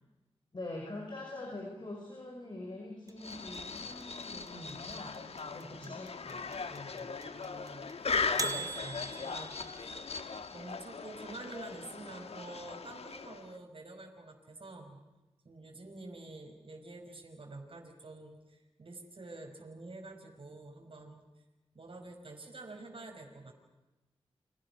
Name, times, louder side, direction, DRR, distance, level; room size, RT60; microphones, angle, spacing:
voice 1, 0.5-5.2 5.5-7.2, left 2 dB, 45° left, 1 dB, 5.6 m, -44 dB
sound 1, 3.1-10.1, right 4 dB, 35° right, 2.0 m, -41 dB
sound 2, 3.2-13.6, left 4 dB, 75° left, 1.4 m, -39 dB
voice 2, 4.9-6.0 7.3-7.9 8.3-9.9 10.5-15.0 15.5-21.2 21.7-23.5, right 2 dB, 60° right, 1 dB, 5.3 m, -48 dB
30.0 x 25.5 x 6.1 m, 1.1 s
cardioid pair, 60°, 10 cm